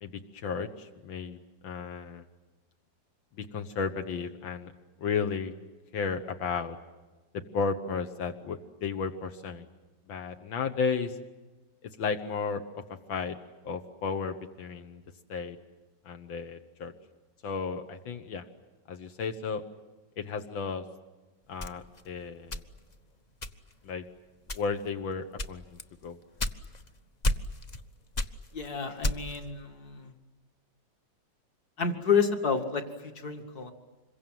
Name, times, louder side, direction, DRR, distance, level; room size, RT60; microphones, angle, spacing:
voice 1, 0.0-2.2 3.4-4.7 5.0-5.5 5.9-6.8 7.5-9.7 10.1-11.2 11.8-12.8 13.1-13.4 13.6-15.0 15.3-15.6 16.1-16.9 17.4-18.4 18.9-19.6 20.2-20.8 21.5-22.6 23.8-24.0 24.5-26.2, left 5 dB, 85° left, 6 dB, 2.0 m, -33 dB
sound 1, 21.6-23.0 23.4-23.9 24.4-24.9 25.4-26.9 27.2-27.8 28.1-29.5, left 1 dB, 30° left, 0.8 m, -32 dB
voice 2, 28.5-30.1 31.8-33.7, left 6 dB, 55° left, 5 dB, 2.7 m, -30 dB
26.5 x 23.0 x 9.3 m, 1.2 s
omnidirectional pair, 2.1 m